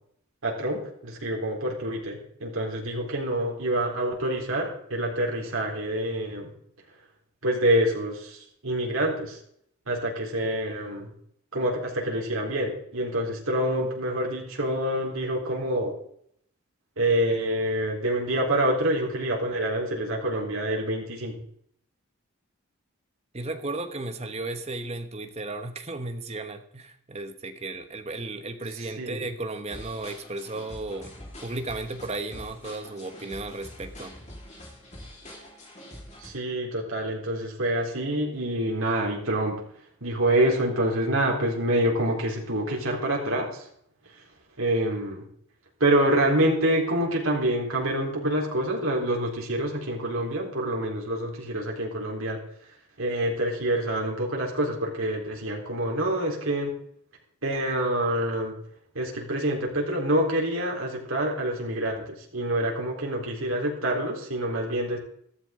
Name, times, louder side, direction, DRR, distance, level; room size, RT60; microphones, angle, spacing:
voice 1, 0.4-6.5 7.4-9.4 9.9-11.1 11.5-15.9 17.0-21.4 28.8-29.2 36.2-39.6 40.0-43.7 44.1-44.3 44.6-45.3 45.8-52.4 53.0-56.8 57.4-58.5 58.9-65.0, right 1 dB, 70° right, -1 dB, 3.9 m, -26 dB
voice 2, 23.3-31.1 31.4-34.1, right 2 dB, 30° right, 8 dB, 1.1 m, -34 dB
sound 1, 29.7-36.3, left 1 dB, 30° left, 4.0 m, -44 dB
14.0 x 13.5 x 3.8 m, 0.68 s
head